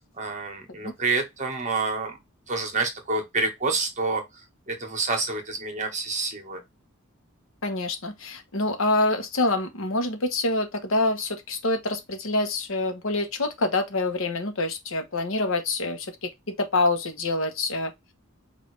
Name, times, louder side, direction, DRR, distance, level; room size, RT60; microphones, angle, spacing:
voice 1, 0.0-2.2 2.5-4.2 4.7-6.6, right 3 dB, 35° right, 1.4 m, -28 dB
voice 2, 7.6-17.9, left 2 dB, 75° left, 1.1 m, -26 dB
5.2 x 2.7 x 3.2 m
head